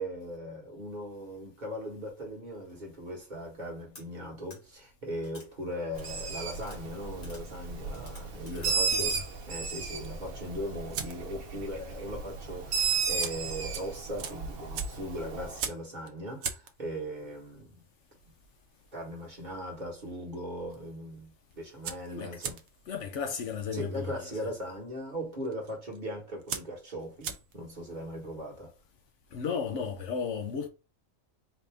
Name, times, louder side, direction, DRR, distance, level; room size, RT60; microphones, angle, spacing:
voice 1, 0.0-9.2 9.5-17.8 18.9-22.6 23.7-28.7, equal, 35° right, 1.3 m, -39 dB
sound 1, 3.9-4.0 4.5-4.6 5.2-5.5 6.0-6.1 6.6-6.8 7.2-7.4 7.9-8.7 9.1-9.2, left 2 dB, 40° left, 1.6 m, -50 dB
Bird, 6.0-15.6, right 5 dB, 55° right, 0.8 m, -34 dB
voice 2, 8.5-9.3 22.2-22.4 22.9-24.5 29.3-30.7, left 6 dB, 70° left, 0.9 m, -35 dB
sound 2, 10.0-11.5 11.8-12.1 12.4-12.5 13.0-19.9 20.2-20.8 21.1-21.2 21.4-27.8, right 7 dB, 85° right, 1.0 m, -40 dB
4.1 x 2.6 x 3.3 m
omnidirectional pair, 1.4 m